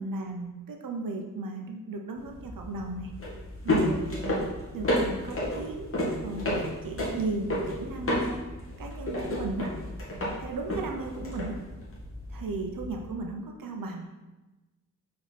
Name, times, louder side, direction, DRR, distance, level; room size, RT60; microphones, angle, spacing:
voice 1, 0.0-3.1 3.6-4.4 4.7-5.9 6.2-8.5 8.8-9.7 10.4-11.6 12.3-14.1, right 3 dB, 90° right, 2 dB, 0.8 m, -35 dB
sound 1, 2.2-13.1, left 1 dB, 40° left, 1.7 m, -32 dB
6.0 x 4.3 x 4.1 m, 1.1 s
wide cardioid pair, 105°, 33 cm